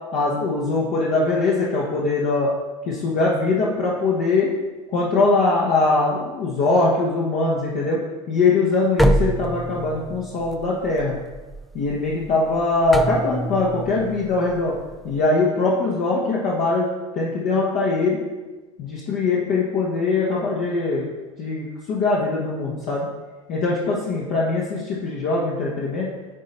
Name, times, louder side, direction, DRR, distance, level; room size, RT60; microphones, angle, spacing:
voice 1, 0.1-2.5 2.9-4.5 4.9-8.0 8.3-11.2 11.7-14.7 15.0-18.2 18.8-21.1 21.4-23.1 23.5-26.1, left 3 dB, 50° left, -5 dB, 1.3 m, -22 dB
sound 1, 9.0-15.3, right 1 dB, ahead, 0.4 m, -26 dB
9.0 x 4.2 x 4.1 m, 1.2 s
figure-of-eight pair, 75°, 16 cm